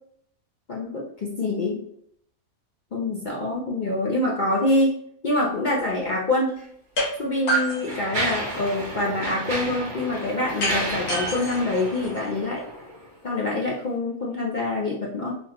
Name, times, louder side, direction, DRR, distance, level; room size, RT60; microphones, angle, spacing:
voice 1, 0.7-1.8 2.9-4.9 5.2-6.6 7.2-12.6 13.2-15.4, left 2 dB, 60° left, -3 dB, 0.5 m, -25 dB
Mechanisms, 6.5-6.6 7.4-13.1, right 1 dB, 40° right, 0.9 m, -32 dB
sound 1, 7.0-7.1 7.5-8.7 10.6-12.6, right 1 dB, 90° left, 1.7 m, -28 dB
3.8 x 3.0 x 2.9 m, 0.69 s
omnidirectional pair, 1.5 m